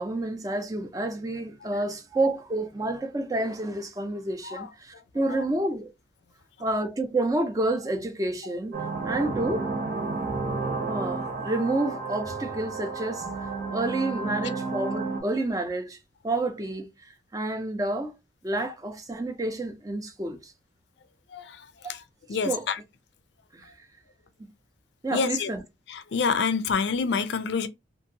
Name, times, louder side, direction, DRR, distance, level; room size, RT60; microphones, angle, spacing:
voice 1, 0.0-5.9 6.6-9.7 10.9-13.3 13.7-16.0 16.2-18.1 18.4-20.5 22.4-22.7 23.5-23.7 24.4-24.5 25.0-25.6, right 2 dB, 20° right, 0.4 m, -29 dB
sound 1, 8.7-15.2, right 4 dB, 65° right, 1.0 m, -31 dB
voice 2, 22.3-22.8 25.1-25.5 25.9-27.7, left 5 dB, 70° left, 0.4 m, -27 dB
2.8 x 2.5 x 2.7 m
head